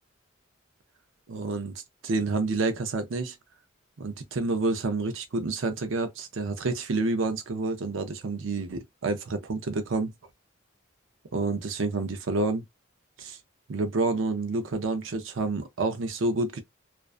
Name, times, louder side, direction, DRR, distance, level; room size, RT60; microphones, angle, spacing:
voice 1, 1.3-3.4 4.0-10.1 11.3-12.6 13.2-13.4 13.7-16.6, right 3 dB, 75° right, 0.6 m, -29 dB
2.4 x 2.2 x 2.4 m
head